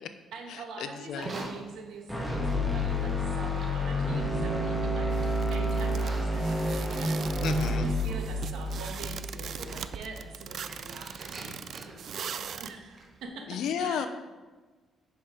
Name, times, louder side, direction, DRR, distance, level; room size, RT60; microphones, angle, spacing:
voice 1, 0.3-5.2 5.5-7.3 7.8-14.1, right 4 dB, 85° right, 2 dB, 1.8 m, -44 dB
Livestock farm animals working animals, 1.0-13.2, right 2 dB, 45° right, 1.7 m, -47 dB
sound 1, 2.1-10.2, left 1 dB, ahead, 1.8 m, -29 dB
sound 2, 5.1-12.7, right 8 dB, 60° right, 0.4 m, -41 dB
voice 2, 7.4-7.9 13.5-14.1, left 8 dB, 80° left, 8 dB, 0.8 m, -31 dB
10.0 x 5.9 x 5.1 m, 1.3 s
cardioid pair, 90°, 0 cm